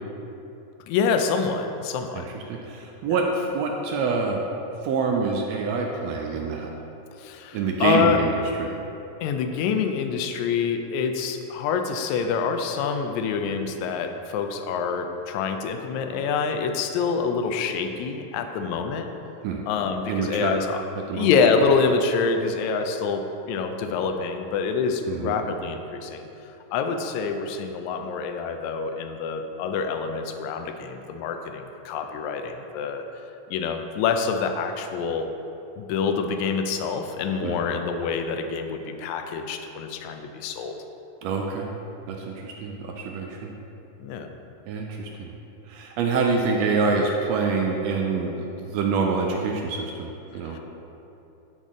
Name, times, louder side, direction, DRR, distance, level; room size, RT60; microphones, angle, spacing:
voice 1, 0.9-2.2 3.1-3.2 7.2-8.2 9.2-19.1 19.7-20.8 21.1-26.2 26.7-33.0 33.5-35.3 35.8-40.7 44.0-44.3 50.4-50.6, left 5 dB, 80° left, 6 dB, 1.9 m, -26 dB
voice 2, 2.1-4.4 4.8-6.7 7.5-8.3 8.6-8.8 19.4-19.6 20.1-20.6 21.1-21.3 25.1-25.3 37.4-37.7 41.2-41.7 42.1-43.5 44.7-45.3 45.7-50.6, right 4 dB, 80° right, 1 dB, 1.5 m, -26 dB
10.0 x 4.0 x 3.7 m, 2.9 s
omnidirectional pair, 3.4 m